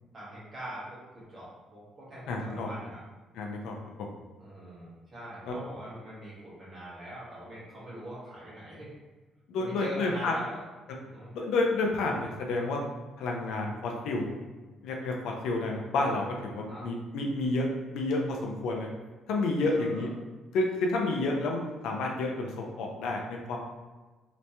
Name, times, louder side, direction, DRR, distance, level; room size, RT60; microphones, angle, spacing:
voice 1, 0.1-1.0 1.3-3.0 4.4-8.9 9.6-10.6 11.0-11.3 16.7-16.9 19.6-20.1, equal, 25° right, -8 dB, 1.4 m, -41 dB
voice 2, 2.3-2.7 3.3-3.8 5.5-5.6 9.5-10.3 11.3-12.8 13.2-14.3 14.8-18.9 19.3-20.1 20.5-23.6, left 2 dB, 80° left, 0 dB, 0.6 m, -30 dB
3.3 x 3.0 x 2.8 m, 1.2 s
cardioid pair, 175°, 0 cm